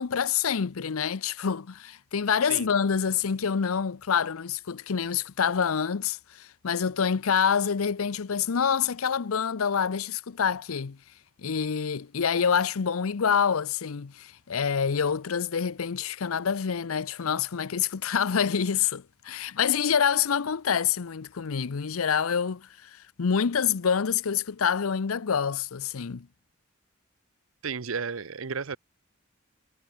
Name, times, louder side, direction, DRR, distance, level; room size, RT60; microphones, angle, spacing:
voice 1, 0.0-11.0 11.4-22.9 23.2-26.3, left 7 dB, 85° left, 0.6 m, -27 dB
voice 2, 27.6-28.8, right 5 dB, 75° right, 0.8 m, -33 dB
head